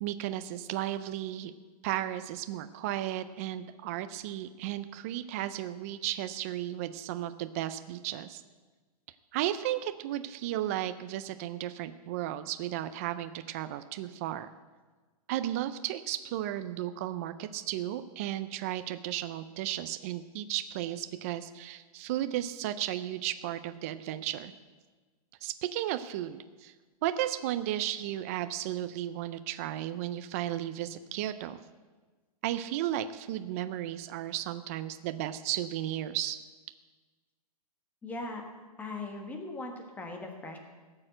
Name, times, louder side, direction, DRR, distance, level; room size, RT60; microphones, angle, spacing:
voice 1, 0.0-1.5 1.8-8.4 9.3-14.5 15.3-24.5 25.4-26.7 27.0-31.6 32.4-36.4, right 13 dB, 25° right, 11 dB, 0.3 m, -34 dB
voice 2, 38.0-38.4 38.8-40.6, left 2 dB, 10° left, 3 dB, 1.4 m, -39 dB
17.0 x 6.6 x 7.6 m, 1.3 s
hypercardioid pair, 160°, 20 cm